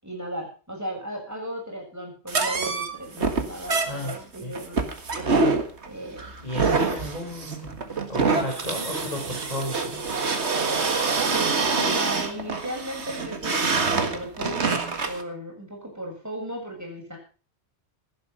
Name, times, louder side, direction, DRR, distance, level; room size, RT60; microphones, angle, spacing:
voice 1, 0.0-4.8 5.9-6.3 11.3-14.8 15.1-17.2, right 1 dB, 15° right, 0 dB, 7.2 m, -36 dB
sound 1, 2.3-15.2, right 4 dB, 85° right, 2.0 m, -26 dB
voice 2, 3.8-4.5 6.4-7.7 8.1-10.0, left 1 dB, 35° left, 0 dB, 4.2 m, -33 dB
17.0 x 11.0 x 5.5 m, 0.37 s
omnidirectional pair, 1.1 m